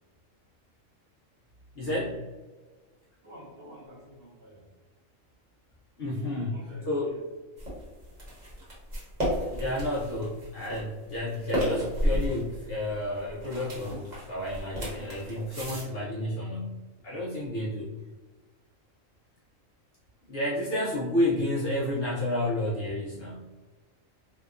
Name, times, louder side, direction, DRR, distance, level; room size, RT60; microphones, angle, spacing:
voice 1, 1.8-2.3 6.0-6.5 6.8-7.1 9.5-17.9 20.3-23.5, left 1 dB, 65° left, -6 dB, 0.6 m, -31 dB
voice 2, 3.2-4.6 6.1-7.2, equal, 60° right, -5 dB, 0.6 m, -49 dB
sound 1, 7.6-15.8, equal, 35° right, 1.0 m, -33 dB
2.8 x 2.2 x 2.3 m, 1.3 s
omnidirectional pair, 1.4 m